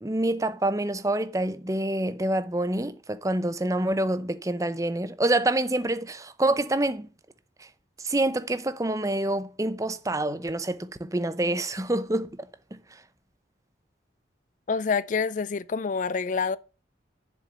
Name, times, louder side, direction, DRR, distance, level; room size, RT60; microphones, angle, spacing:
voice 1, 0.0-7.1 7.6-7.7 8.0-12.4 12.7-13.0, right 1 dB, 20° right, 0.7 m, -27 dB
voice 2, 14.7-16.6, left 5 dB, 45° left, 0.4 m, -27 dB
7.3 x 6.9 x 7.2 m
head